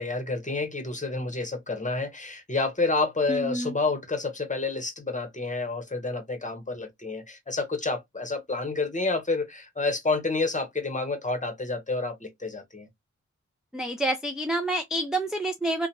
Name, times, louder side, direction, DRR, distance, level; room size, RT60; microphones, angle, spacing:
voice 1, 0.0-12.9, left 3 dB, 25° left, 1.0 m, -29 dB
voice 2, 3.3-3.7 13.7-15.9, right 1 dB, ahead, 0.4 m, -28 dB
2.9 x 2.2 x 2.6 m
wide cardioid pair, 70°, 29 cm